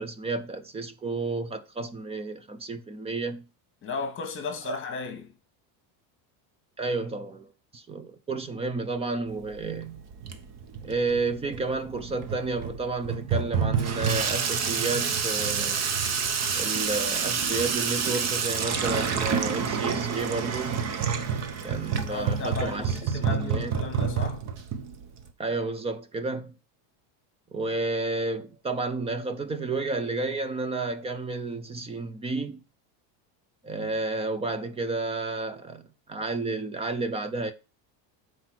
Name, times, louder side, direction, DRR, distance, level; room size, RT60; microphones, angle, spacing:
voice 1, 0.0-3.4 6.8-10.0 10.8-15.8 16.5-20.8 21.6-23.8 25.4-26.5 27.5-32.6 33.6-37.5, right 3 dB, 15° right, 0.5 m, -31 dB
voice 2, 3.8-5.3 22.1-24.4, left 4 dB, 25° left, 1.8 m, -35 dB
Water tap faucet / Sink (filling or washing), 9.3-25.3, right 6 dB, 35° right, 0.9 m, -29 dB
7.8 x 4.7 x 5.9 m
cardioid pair, 160°, 48 cm